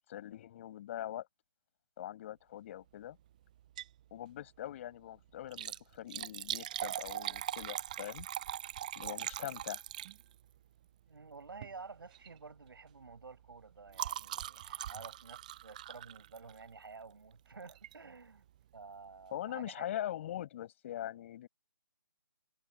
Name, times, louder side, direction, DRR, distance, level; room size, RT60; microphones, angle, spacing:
voice 1, 0.1-1.3 2.0-3.2 4.1-8.3 8.9-9.8 19.3-21.5, left 12 dB, 35° left, 6.3 m, -42 dB
Liquid, 3.6-4.0 4.4-4.5 5.4-10.5 11.5-11.8 12.1-12.4 12.7-16.7 17.7-17.9 18.5-18.6 18.8-18.9, right 12 dB, 20° right, 0.4 m, -41 dB
voice 2, 11.1-18.5 18.7-20.1, right 4 dB, 70° right, 4.9 m, -51 dB
figure-of-eight pair, 155°, 12 cm